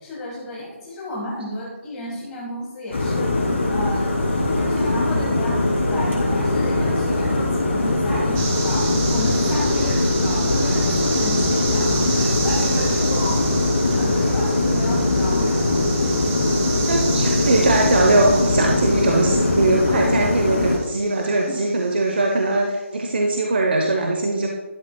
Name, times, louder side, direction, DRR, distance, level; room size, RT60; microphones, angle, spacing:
voice 1, 0.0-15.9 21.4-21.6, left 1 dB, 10° left, -6 dB, 1.4 m, -32 dB
sound 1, 2.9-20.8, left 2 dB, 60° left, 2.4 m, -21 dB
sound 2, 8.3-22.4, right 3 dB, 10° right, 0.4 m, -31 dB
voice 2, 16.9-24.5, right 2 dB, 50° right, 1 dB, 0.8 m, -20 dB
11.5 x 6.4 x 2.3 m, 1.2 s
hypercardioid pair, 175°, 7 cm